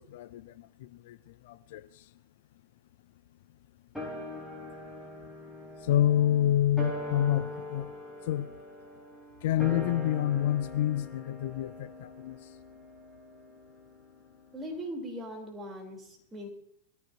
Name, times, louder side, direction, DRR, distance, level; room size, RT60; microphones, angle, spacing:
voice 1, 0.0-2.1 5.8-7.9 8.3-8.5 9.4-12.5, left 12 dB, 55° left, 13 dB, 0.5 m, -28 dB
sound 1, 3.9-14.6 14.8-14.9, left 1 dB, ahead, 4.2 m, -42 dB
voice 2, 14.5-16.5, equal, 15° right, 0 dB, 3.6 m, -40 dB
22.0 x 14.0 x 2.8 m, 0.70 s
figure-of-eight pair, 90°, 0 cm